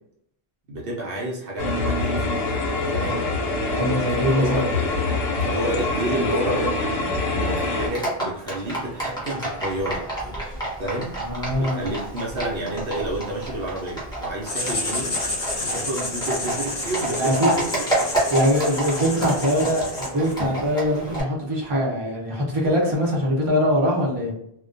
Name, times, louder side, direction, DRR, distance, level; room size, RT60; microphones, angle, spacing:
voice 1, 0.7-2.5 2.9-3.2 4.3-4.9 5.4-6.8 7.4-10.0 10.8-11.1 11.5-15.2 15.6-17.7 19.5-19.7, right 1 dB, 65° right, -3 dB, 0.8 m, -29 dB
sound 1, 1.6-7.9, left 3 dB, 75° left, 0.9 m, -25 dB
voice 2, 3.7-4.6 11.2-11.9 17.2-17.6 18.3-24.3, equal, 30° right, -3 dB, 0.7 m, -22 dB
Livestock farm animals working animals, 7.8-21.2, right 1 dB, 5° left, 0.8 m, -30 dB
Writing, 14.5-20.4, left 2 dB, 45° left, 0.9 m, -30 dB
2.3 x 2.1 x 2.5 m, 0.73 s
omnidirectional pair, 1.1 m